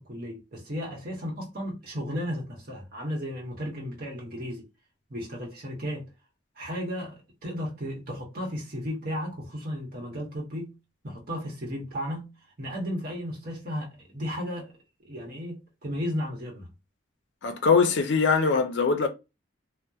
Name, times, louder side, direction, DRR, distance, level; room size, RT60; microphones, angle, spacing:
voice 1, 0.0-4.6 5.1-6.0 6.6-10.7 11.0-12.3 12.6-14.8 15.0-16.7, equal, 50° right, 0.9 m, -34 dB
voice 2, 17.4-19.1, left 5 dB, 70° left, 0.4 m, -22 dB
2.8 x 2.0 x 2.3 m
head